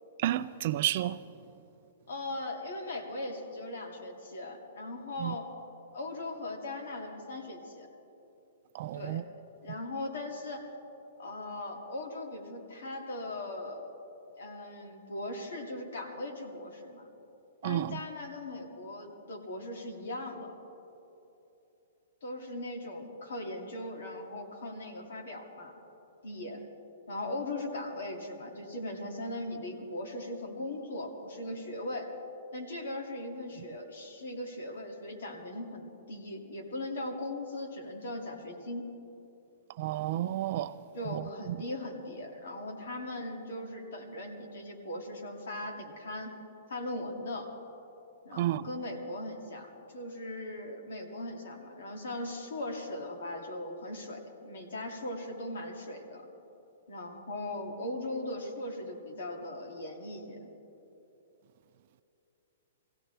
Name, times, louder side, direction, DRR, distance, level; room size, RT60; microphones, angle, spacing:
voice 1, 0.2-1.2 5.2-5.4 8.7-9.2 17.6-18.0 39.8-40.8 41.1-41.6 48.4-48.7, right 13 dB, 40° right, 0.3 m, -31 dB
voice 2, 2.1-5.5 5.9-7.9 8.9-9.2 9.6-10.7 11.2-13.9 14.4-17.1 17.6-20.5 22.2-25.8 26.2-26.6 27.1-32.1 32.5-38.9 40.9-46.3 46.7-47.5 48.2-56.3 56.9-60.5, left 1 dB, 70° left, 2.4 m, -39 dB
22.5 x 16.0 x 3.4 m
hypercardioid pair, 170°, 0 cm